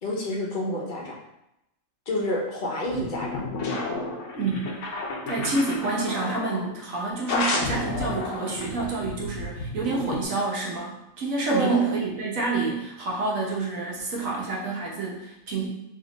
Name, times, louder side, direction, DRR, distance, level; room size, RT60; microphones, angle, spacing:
voice 1, 0.0-1.2 2.1-3.4 11.5-12.0, equal, 45° left, -2 dB, 0.8 m, -28 dB
sound 1, 2.9-6.7 7.3-10.3, left 3 dB, 70° left, 1.0 m, -31 dB
voice 2, 4.4-4.8 5.3-15.7, right 3 dB, 85° right, -3 dB, 1.4 m, -28 dB
3.2 x 2.9 x 3.8 m, 0.87 s
omnidirectional pair, 1.4 m